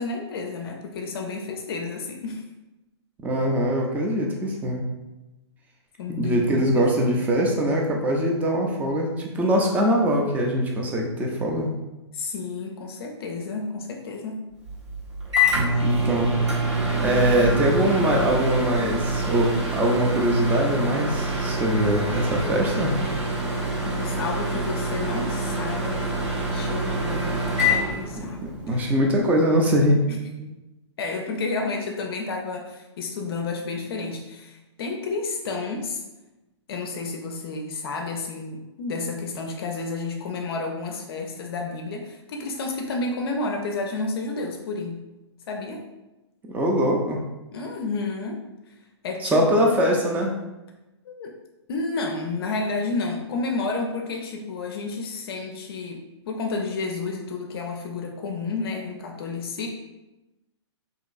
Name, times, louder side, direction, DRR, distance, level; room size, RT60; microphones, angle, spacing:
voice 1, 0.0-2.5 6.0-6.9 12.1-14.4 23.8-28.4 28.7-28.9 30.1-30.2 31.0-36.0 36.7-45.0 45.5-45.8 47.5-48.7 49.0-49.7 51.0-51.4 51.7-59.7, left 3 dB, 55° left, 2 dB, 0.4 m, -31 dB
voice 2, 3.2-4.8 6.2-11.7 15.8-16.3 17.0-22.9 28.2-30.0 30.4-30.5 46.5-47.2 49.2-50.4, equal, 10° right, 0 dB, 0.4 m, -22 dB
Microwave oven, 14.7-28.7, right 1 dB, 80° right, 1.2 m, -26 dB
2.9 x 2.6 x 2.4 m, 1.0 s
hypercardioid pair, 130°, 15 cm